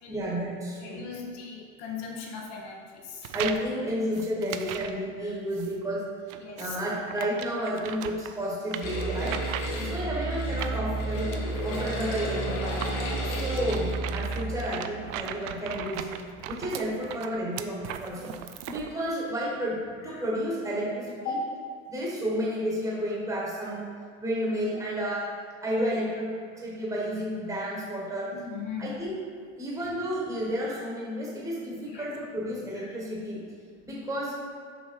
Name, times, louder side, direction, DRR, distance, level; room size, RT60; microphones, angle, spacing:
voice 1, 0.1-1.0 1.3-1.4 3.3-6.1 6.6-9.4 9.8-12.8 13.2-16.2 16.5-18.3 18.6-21.4 21.9-23.9 24.2-25.3 25.6-26.3 26.5-28.3 28.8-29.2 29.6-33.4 33.8-34.3, equal, 10° right, -5 dB, 1.4 m, -31 dB
voice 2, 0.8-3.3 5.3-5.4 6.4-6.8 9.7-10.1 13.2-13.5 20.0-20.2 21.2-21.5 28.3-29.0 31.9-32.1 32.8-32.9, left 4 dB, 60° left, -1 dB, 1.5 m, -38 dB
sound 1, 3.2-3.7 4.1-5.0 5.5-5.7 6.3-10.0 10.6-18.9, right 10 dB, 85° right, 0.6 m, -38 dB
sound 2, 8.8-14.0, left 1 dB, 80° left, 1.8 m, -36 dB
sound 3, 8.8-16.3, right 3 dB, 40° right, 1.0 m, -33 dB
6.2 x 5.6 x 4.6 m, 2.1 s
supercardioid pair, 140°, 38 cm